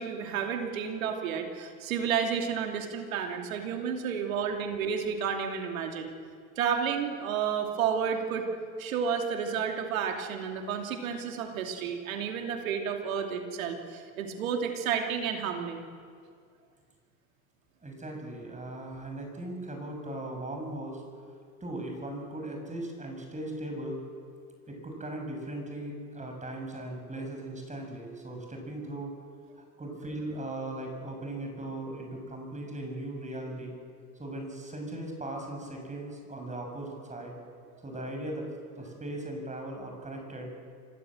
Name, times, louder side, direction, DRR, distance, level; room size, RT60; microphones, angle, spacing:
voice 1, 0.0-6.1 6.6-8.5 8.8-15.9, right 7 dB, 75° right, 4 dB, 2.9 m, -31 dB
voice 2, 17.8-21.0 21.6-24.0 24.7-29.1 29.6-33.7 34.2-37.4 37.8-38.5 38.8-40.5, right 1 dB, 15° right, 2 dB, 7.0 m, -38 dB
25.5 x 17.5 x 7.8 m, 2.2 s
hypercardioid pair, 80°, 41 cm